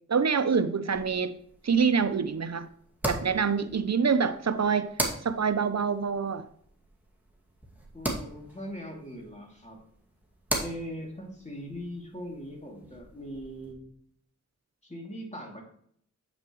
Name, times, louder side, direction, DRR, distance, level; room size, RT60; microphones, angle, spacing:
voice 1, 0.1-1.3 1.6-2.7 3.1-4.9 5.2-6.5, right 6 dB, 60° right, 0.7 m, -26 dB
sound 1, 0.9-13.7, right 1 dB, 5° right, 2.2 m, -39 dB
voice 2, 7.9-9.8 10.6-13.9 14.8-15.6, equal, 20° left, 2.7 m, -40 dB
7.8 x 7.3 x 3.1 m
wide cardioid pair, 50°, 31 cm